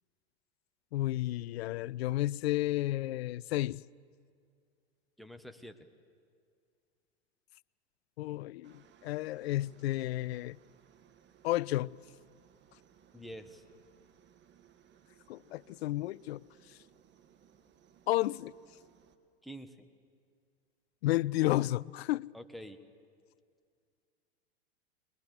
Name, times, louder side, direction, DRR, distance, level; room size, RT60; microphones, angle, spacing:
voice 1, 0.9-3.8 8.2-10.6 11.4-12.0 15.3-16.4 18.1-18.5 21.0-22.3, left 16 dB, 70° left, 0.5 m, -32 dB
voice 2, 5.2-5.9 13.1-13.6 19.4-19.9 22.3-22.8, equal, ahead, 1.3 m, -47 dB
Aircraft, 8.6-19.2, right 9 dB, 35° right, 1.5 m, -63 dB
22.0 x 21.0 x 7.1 m
hypercardioid pair, 95°, 33 cm